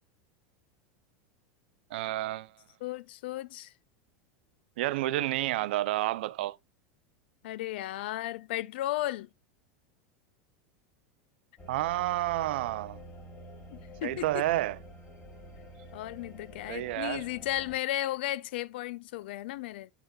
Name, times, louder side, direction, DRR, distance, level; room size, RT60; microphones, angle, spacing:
voice 1, 1.9-2.5 4.8-6.6 11.7-13.0 14.0-14.8 16.7-17.3, right 16 dB, 70° right, 0.5 m, -30 dB
voice 2, 2.8-3.7 7.4-9.3 13.7-14.4 15.9-19.9, left 15 dB, 70° left, 0.4 m, -34 dB
sound 1, 11.6-17.8, right 1 dB, 25° left, 1.9 m, -48 dB
8.0 x 6.6 x 2.3 m
supercardioid pair, 165°, 6 cm